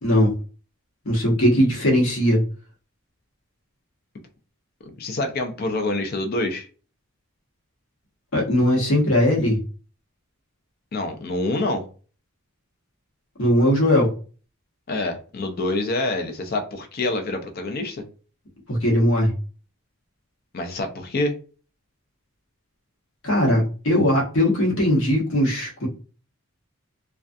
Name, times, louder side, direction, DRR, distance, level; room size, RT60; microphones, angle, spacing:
voice 1, 1.1-2.4 8.3-9.6 13.4-14.1 18.7-19.3 23.2-25.9, equal, 65° left, -2 dB, 0.9 m, -19 dB
voice 2, 5.0-6.7 10.9-11.9 14.9-18.0 20.5-21.3, left 2 dB, 45° left, 5 dB, 0.4 m, -26 dB
2.5 x 2.3 x 2.3 m, 0.37 s
head